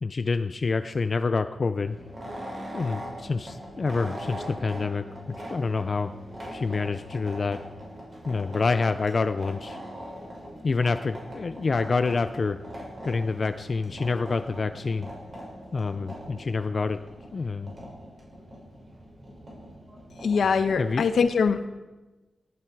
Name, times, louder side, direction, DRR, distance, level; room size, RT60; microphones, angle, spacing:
voice 1, 0.0-2.0 2.7-6.1 6.5-7.6 8.2-9.8 10.6-12.6 13.0-15.1 15.7-17.0 17.3-17.7 20.8-21.1, left 4 dB, 40° left, 10 dB, 0.5 m, -27 dB
sound 1, 1.8-21.1, equal, 35° right, 6.5 m, -41 dB
voice 2, 20.2-21.7, left 5 dB, 75° left, 8 dB, 1.2 m, -23 dB
19.0 x 12.5 x 4.7 m, 1.1 s
wide cardioid pair, 125°, 0 cm